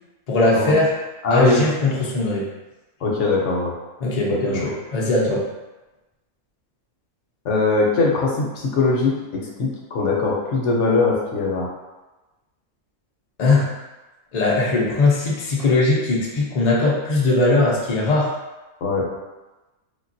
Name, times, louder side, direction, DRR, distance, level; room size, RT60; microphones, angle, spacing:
voice 1, 0.3-0.9 1.3-2.5 4.0-5.4 13.4-13.7 14.3-18.3, left 2 dB, 50° left, -4 dB, 0.5 m, -19 dB
voice 2, 1.2-1.6 3.0-3.7 4.3-4.7 7.4-11.7 18.8-19.0, left 3 dB, 65° left, -2 dB, 0.9 m, -21 dB
3.5 x 2.2 x 2.5 m, 1.1 s
omnidirectional pair, 1.4 m